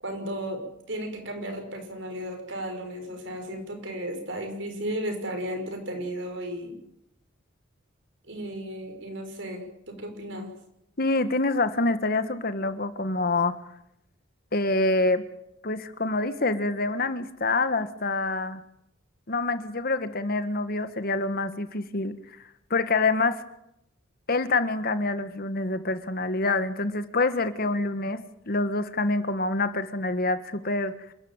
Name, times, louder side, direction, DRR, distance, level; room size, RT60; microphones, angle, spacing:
voice 1, 0.0-0.6 0.9-6.8 8.3-10.5, equal, 65° right, 5 dB, 6.3 m, -34 dB
voice 2, 11.0-13.5 14.5-15.2 15.6-18.6 19.3-22.2 22.7-23.4 24.3-28.2 28.4-31.0, left 3 dB, 50° left, 11 dB, 1.6 m, -26 dB
28.0 x 13.5 x 9.1 m, 0.79 s
head